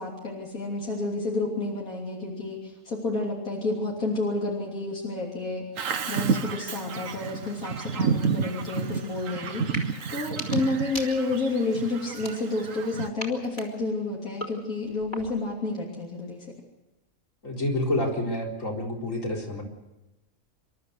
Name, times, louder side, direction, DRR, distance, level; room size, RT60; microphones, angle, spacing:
voice 1, 0.0-5.6 6.1-9.8 10.1-16.5, left 2 dB, 80° left, -3 dB, 3.7 m, -30 dB
Bird vocalization bird call bird song, 5.8-13.1, right 5 dB, 65° right, 1.4 m, -30 dB
sound 1, 9.6-9.9 10.2-11.5 12.1-12.8 13.2-15.5, left 1 dB, 35° left, 3.8 m, -40 dB
voice 2, 17.4-19.6, left 1 dB, 60° left, -1 dB, 4.5 m, -28 dB
27.5 x 13.0 x 8.2 m, 1.0 s
omnidirectional pair, 1.5 m